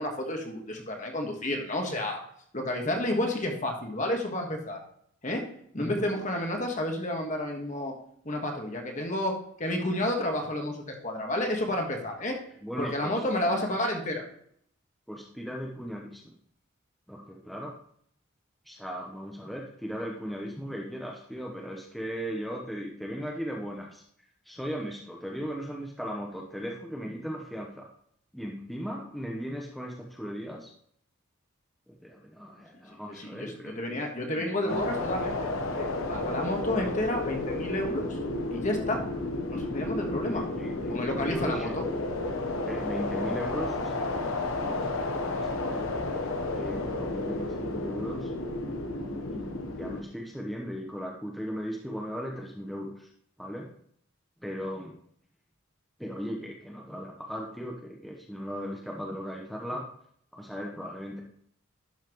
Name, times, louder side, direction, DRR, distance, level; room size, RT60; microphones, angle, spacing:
voice 1, 0.0-2.2 2.5-4.8 5.2-5.4 5.7-7.9 8.2-9.3 9.6-12.4 12.8-14.2 33.1-38.2 38.5-39.0 39.5-40.4 40.9-41.8, left 1 dB, 35° left, 2 dB, 1.5 m, -30 dB
voice 2, 5.8-6.1 12.6-13.5 15.1-16.2 17.1-17.7 18.7-24.0 24.5-27.9 28.3-30.7 31.9-34.0 34.3-34.8 36.7-36.9 39.6-39.8 40.1-41.8 42.6-44.3 44.6-44.8 45.3-48.3 48.9-53.1 53.4-53.7 54.4-54.9 56.0-59.8 60.3-61.2, equal, ahead, -2 dB, 0.9 m, -37 dB
sound 1, 34.7-50.0, left 2 dB, 85° left, 1.0 m, -32 dB
11.5 x 5.8 x 3.0 m, 0.65 s
head